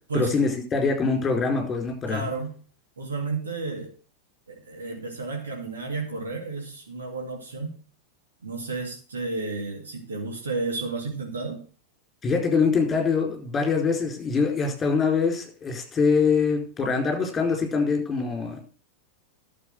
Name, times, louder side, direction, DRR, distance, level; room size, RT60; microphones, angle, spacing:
voice 1, 0.1-2.2 12.2-18.6, left 5 dB, 20° left, 3 dB, 4.6 m, -24 dB
voice 2, 2.1-2.6 3.0-3.9 4.5-7.8 8.4-11.6, right 3 dB, 70° right, 2 dB, 2.3 m, -32 dB
11.5 x 6.9 x 6.4 m, 0.39 s
figure-of-eight pair, 90°, 0 cm